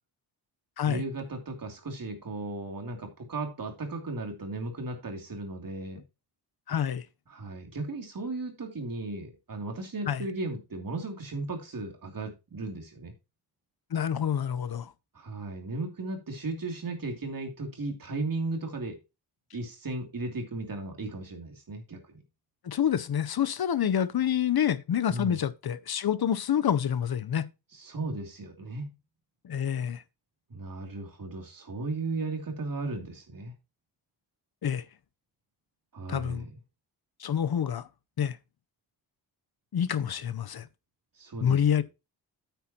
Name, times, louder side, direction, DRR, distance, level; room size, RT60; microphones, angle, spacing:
voice 1, 0.8-6.0 7.3-13.1 15.1-19.0 19.5-22.2 25.1-25.4 27.7-28.9 30.5-33.5 35.9-36.5 41.2-41.8, right 2 dB, 50° right, 2.8 m, -36 dB
voice 2, 6.7-7.1 10.0-10.2 13.9-14.9 22.6-27.5 29.4-30.0 34.6-34.8 36.1-36.5 37.2-37.9 38.2-38.4 39.7-40.7 41.4-41.8, left 9 dB, 60° left, 0.8 m, -27 dB
9.1 x 8.9 x 2.9 m
cardioid pair, 80°, 43 cm